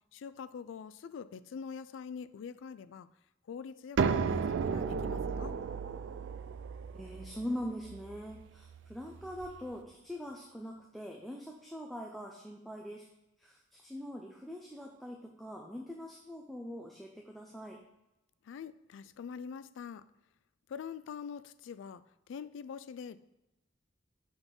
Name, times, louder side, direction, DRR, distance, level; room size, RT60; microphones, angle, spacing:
voice 1, 0.1-3.1 3.5-5.6 18.4-20.0 20.7-23.2, left 6 dB, 75° left, 15 dB, 0.3 m, -44 dB
sound 1, 4.0-9.6, right 5 dB, 65° right, 0.3 m, -34 dB
voice 2, 6.9-13.1 13.4-17.8, equal, ahead, 0 dB, 0.4 m, -43 dB
5.9 x 3.9 x 5.3 m, 0.94 s
head